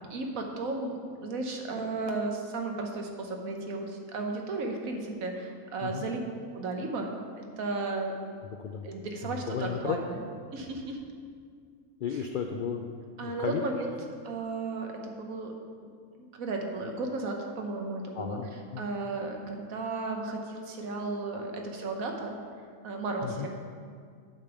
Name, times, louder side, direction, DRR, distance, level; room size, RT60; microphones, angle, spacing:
voice 1, 0.1-0.9 1.2-6.2 6.5-7.1 7.4-8.1 8.8-10.3 10.5-11.0 12.1-12.2 13.2-13.9 14.2-15.5 15.8-15.9 16.3-18.4 18.8-22.3 22.8-23.5, right 3 dB, 85° right, 2 dB, 1.4 m, -34 dB
voice 2, 9.2-10.0 12.0-12.9 13.2-13.6 18.1-18.9 23.2-23.5, left 7 dB, 70° left, 4 dB, 0.4 m, -34 dB
8.1 x 5.1 x 7.0 m, 2.1 s
omnidirectional pair, 1.4 m